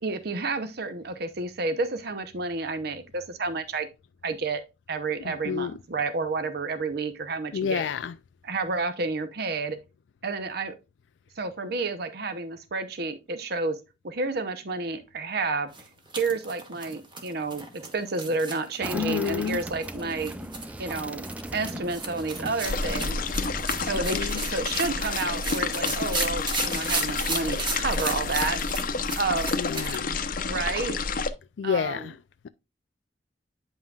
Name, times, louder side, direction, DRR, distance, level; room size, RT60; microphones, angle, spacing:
voice 1, 0.0-3.9 4.2-4.6 4.9-7.8 8.4-9.8 10.2-10.7 11.4-13.8 14.0-15.7 16.2-17.6 17.9-20.3 20.8-21.2 21.5-23.2 23.8-28.6 29.2-29.5 30.5-31.0 31.6-32.1, right 3 dB, 60° right, 0.8 m, -30 dB
voice 2, 5.5-5.8 7.5-8.1 18.9-19.6 23.9-24.4 29.6-30.2 31.6-32.1, left 7 dB, 90° left, 0.4 m, -29 dB
sound 1, 15.7-30.0, right 3 dB, 25° right, 1.2 m, -35 dB
sound 2, 18.8-23.9, right 1 dB, 10° right, 0.3 m, -39 dB
sound 3, 22.6-31.3, left 4 dB, 50° left, 0.7 m, -29 dB
8.9 x 5.5 x 2.4 m
head